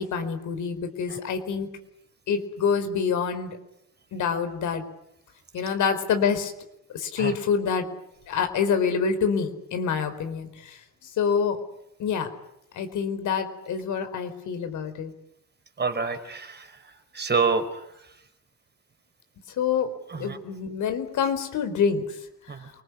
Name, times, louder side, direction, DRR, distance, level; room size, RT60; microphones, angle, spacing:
voice 1, 0.0-1.7 2.3-3.6 4.1-4.8 5.5-6.5 6.9-7.9 8.3-11.6 12.0-12.3 12.7-15.1 19.6-22.2 22.5-22.6, left 6 dB, 75° left, 8 dB, 4.7 m, -26 dB
voice 2, 15.8-16.7 17.1-17.6 20.1-20.4 22.5-22.7, right 5 dB, 35° right, 8 dB, 4.4 m, -27 dB
29.0 x 20.5 x 9.9 m, 0.81 s
cardioid pair, 90°, 30 cm